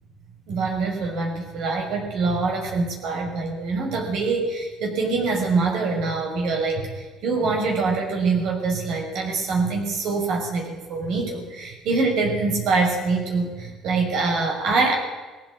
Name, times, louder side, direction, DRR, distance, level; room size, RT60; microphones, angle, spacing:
voice 1, 0.5-14.9, right 3 dB, 70° right, 1 dB, 5.7 m, -24 dB
20.0 x 15.0 x 8.5 m, 1.2 s
cardioid pair, 115°, 0 cm